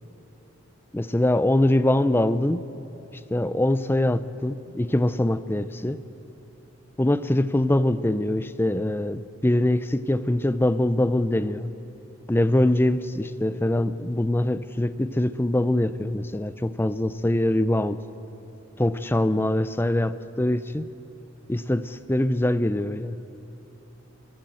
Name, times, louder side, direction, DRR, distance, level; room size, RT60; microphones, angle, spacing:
voice 1, 0.9-2.6 3.3-6.0 7.0-11.7 12.3-18.0 18.8-20.9 21.5-23.2, left 1 dB, 10° left, 13 dB, 0.5 m, -23 dB
25.5 x 13.5 x 7.8 m, 3.0 s
head